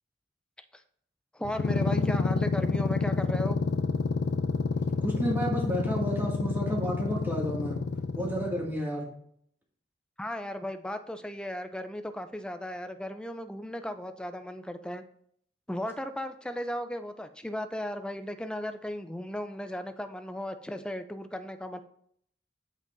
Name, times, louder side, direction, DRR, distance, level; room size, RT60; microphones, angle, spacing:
voice 1, 1.3-3.6 10.2-15.0 15.7-21.8, left 1 dB, 5° left, 8 dB, 0.4 m, -36 dB
sound 1, 1.4-8.8, left 4 dB, 75° left, 0.4 m, -29 dB
voice 2, 5.0-7.8 8.1-9.1, equal, 10° right, -2 dB, 2.0 m, -31 dB
13.0 x 5.2 x 2.6 m, 0.65 s
head